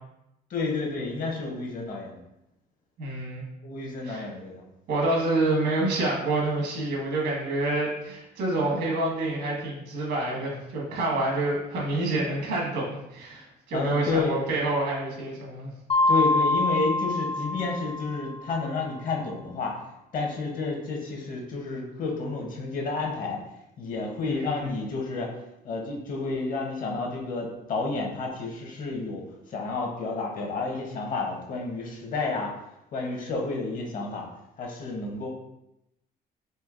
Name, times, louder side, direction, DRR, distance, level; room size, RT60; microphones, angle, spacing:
voice 1, 0.5-2.2 3.6-4.6 12.1-12.3 13.7-14.4 16.1-19.8 20.1-23.4 23.8-25.3 25.6-32.5 32.9-34.3 34.6-35.3, left 3 dB, 55° left, 0 dB, 0.9 m, -30 dB
voice 2, 3.0-3.4 4.0-4.2 4.9-15.7 24.2-24.7, right 2 dB, 80° right, -2 dB, 1.4 m, -28 dB
Mallet percussion, 15.9-18.5, left 2 dB, 35° left, 0.5 m, -25 dB
4.4 x 2.9 x 2.5 m, 0.87 s
cardioid pair, 110°, 17 cm